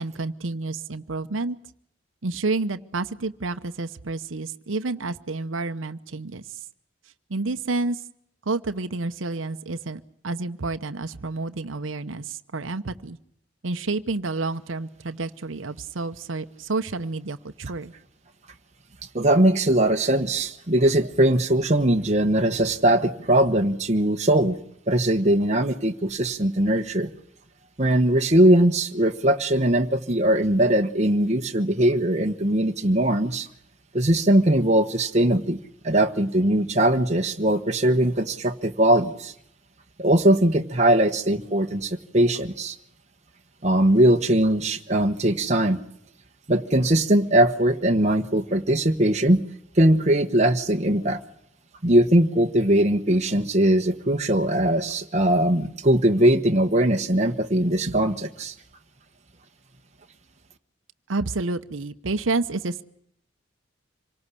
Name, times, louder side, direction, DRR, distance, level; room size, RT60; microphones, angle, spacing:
voice 1, 0.0-1.6 2.2-6.6 7.3-8.0 8.5-13.2 13.6-17.9 61.1-62.8, right 3 dB, 85° right, 8 dB, 0.9 m, -29 dB
voice 2, 19.1-24.6 24.9-27.1 27.8-33.5 33.9-35.6 35.8-39.3 40.0-42.7 43.6-45.8 46.5-49.4 49.8-51.2 51.8-58.5, right 1 dB, 35° right, 4 dB, 1.1 m, -20 dB
26.0 x 18.5 x 8.3 m, 0.73 s
head